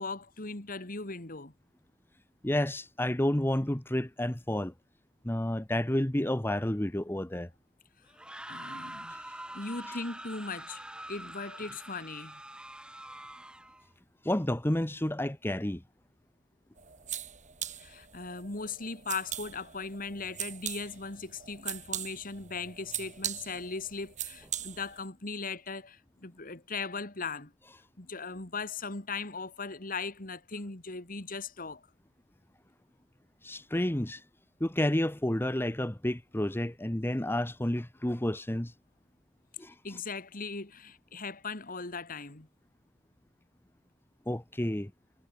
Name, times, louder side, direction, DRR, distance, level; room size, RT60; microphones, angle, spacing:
voice 1, 0.0-1.5 8.5-9.1 9.5-10.8 11.1-12.4 17.8-27.5 28.0-31.8 39.8-42.5, left 4 dB, 50° left, 2.5 m, -38 dB
voice 2, 2.4-4.7 5.2-7.5 9.1-9.2 9.9-10.0 14.2-15.8 33.4-34.2 34.6-38.7 39.6-39.7 44.3-44.9, left 1 dB, 10° left, 1.1 m, -30 dB
sound 1, 8.1-13.8, right 1 dB, 5° right, 4.7 m, -45 dB
sound 2, 16.8-25.1, right 10 dB, 40° right, 5.0 m, -40 dB
head